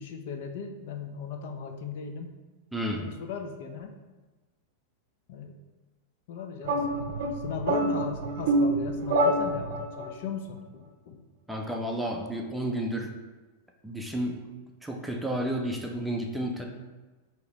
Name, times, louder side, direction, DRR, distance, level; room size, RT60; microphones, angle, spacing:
voice 1, 0.0-2.3 3.0-3.9 5.3-5.5 6.3-11.2, left 6 dB, 65° left, 5 dB, 0.4 m, -37 dB
voice 2, 2.7-3.0 11.5-13.1 13.8-14.4 14.8-16.6, right 1 dB, 5° right, 1 dB, 0.5 m, -31 dB
sound 1, 6.6-10.1, right 1 dB, 65° right, 0.5 m, -27 dB
4.5 x 2.8 x 3.0 m, 1.2 s
hypercardioid pair, 130°, 0 cm